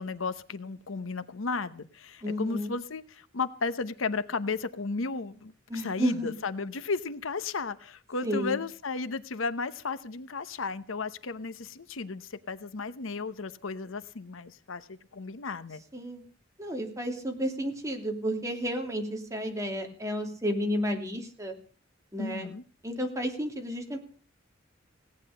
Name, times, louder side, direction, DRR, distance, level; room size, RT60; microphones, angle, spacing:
voice 1, 0.0-15.8 22.2-22.6, left 4 dB, 80° left, 0.9 m, -34 dB
voice 2, 2.2-2.7 5.7-6.3 8.2-8.5 15.9-16.2 16.6-21.5 22.1-22.5 22.8-24.0, equal, 15° right, 2.8 m, -31 dB
17.5 x 9.6 x 6.6 m
head